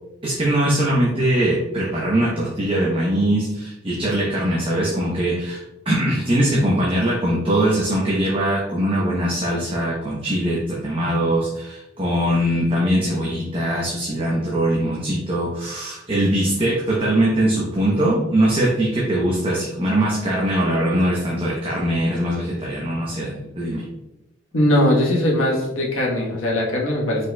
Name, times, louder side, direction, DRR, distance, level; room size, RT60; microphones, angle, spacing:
voice 1, 0.2-23.8, right 1 dB, 25° right, -5 dB, 0.8 m, -21 dB
voice 2, 24.5-27.3, left 1 dB, 90° left, -3 dB, 1.3 m, -20 dB
5.0 x 4.3 x 2.2 m, 0.95 s
head